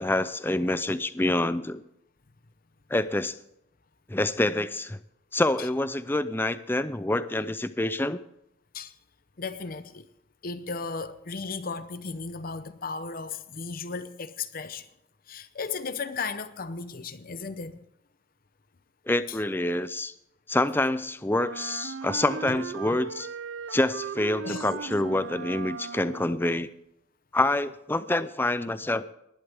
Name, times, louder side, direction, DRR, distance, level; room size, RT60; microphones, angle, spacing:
voice 1, 0.0-1.8 2.9-3.4 4.1-5.0 5.3-8.2 19.1-20.1 20.5-23.3 23.7-26.7 27.3-29.1, left 1 dB, 10° left, 0.4 m, -27 dB
voice 2, 9.4-10.1 10.4-14.9 15.3-17.8 19.3-19.4 22.5-22.6 24.4-24.7 25.9-26.0, left 4 dB, 45° left, 0.7 m, -35 dB
Wind instrument woodwind instrument, 21.3-26.4, right 6 dB, 65° right, 0.5 m, -38 dB
19.5 x 11.5 x 3.5 m
head